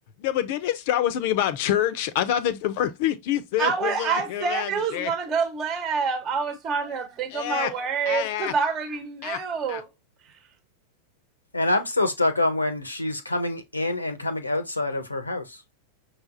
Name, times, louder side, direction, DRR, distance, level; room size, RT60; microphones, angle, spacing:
voice 1, 0.2-5.1 7.3-7.7 8.1-8.5 9.2-9.4 9.7-9.8, left 11 dB, 50° left, 0.7 m, -26 dB
voice 2, 3.6-9.9 10.2-10.4, right 5 dB, 30° right, 1.1 m, -27 dB
voice 3, 11.5-15.6, left 2 dB, 85° left, 0.9 m, -26 dB
6.1 x 3.4 x 2.5 m
figure-of-eight pair, 90°, 0 cm